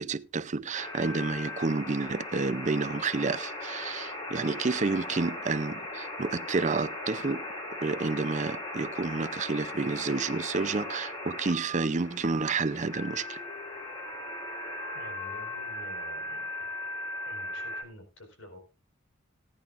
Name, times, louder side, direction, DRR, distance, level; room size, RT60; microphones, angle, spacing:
voice 1, 0.0-7.5 7.8-13.4, right 4 dB, 35° right, 0.5 m, -30 dB
sound 1, 0.7-17.8, left 1 dB, 25° left, 3.8 m, -38 dB
voice 2, 14.9-16.7 17.3-18.6, left 1 dB, 70° left, 4.7 m, -49 dB
18.5 x 10.5 x 2.5 m
head